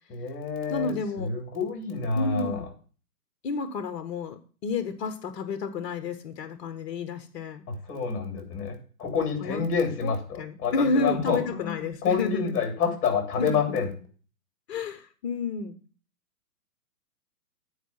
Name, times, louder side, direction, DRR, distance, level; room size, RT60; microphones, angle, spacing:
voice 1, 0.1-2.7 7.7-11.7 12.0-13.9, left 5 dB, 25° left, 4 dB, 3.3 m, -28 dB
voice 2, 0.7-1.3 2.1-2.7 3.4-7.6 9.4-9.6 10.0-12.6 13.4-13.5 14.7-15.8, left 3 dB, 45° left, 9 dB, 1.1 m, -30 dB
9.3 x 4.8 x 7.3 m, 0.38 s
hypercardioid pair, 135°, 47 cm